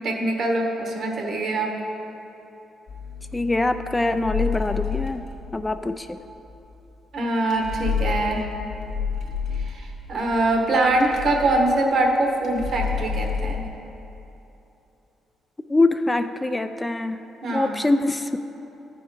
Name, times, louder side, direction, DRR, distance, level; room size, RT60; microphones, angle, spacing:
voice 1, 0.0-1.7 7.1-8.5 9.6-13.6 17.4-17.8, right 2 dB, 60° right, 1 dB, 1.4 m, -23 dB
sound 1, 2.9-13.7, left 6 dB, 75° left, 1.1 m, -30 dB
voice 2, 3.3-5.3 5.5-6.2 15.7-17.2 17.5-18.4, left 2 dB, 15° left, 9 dB, 0.3 m, -23 dB
13.0 x 4.6 x 4.9 m, 3.0 s
cardioid pair, 90°, 0 cm